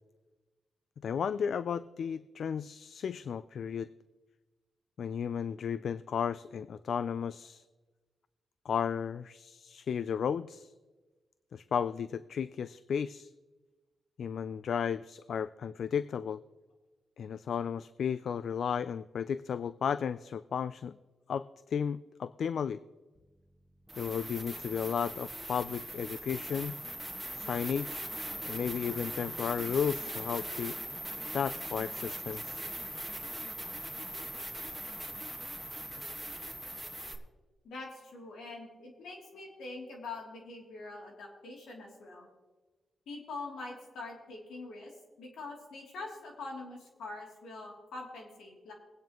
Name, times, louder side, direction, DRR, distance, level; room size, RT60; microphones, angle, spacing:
voice 1, 1.0-3.9 5.0-7.6 8.7-10.7 11.5-13.3 14.2-16.4 17.2-21.0 21.3-22.8 24.0-26.8 27.3-28.1 28.4-30.8 31.3-32.6, left 7 dB, 70° left, 15 dB, 0.3 m, -34 dB
sound 1, 23.2-23.3 23.9-37.1, right 1 dB, 5° right, 1.6 m, -40 dB
voice 2, 37.6-42.3 43.1-44.9 45.2-48.7, left 3 dB, 85° left, -1 dB, 2.9 m, -44 dB
21.0 x 9.1 x 3.0 m, 1.2 s
cardioid pair, 70°, 0 cm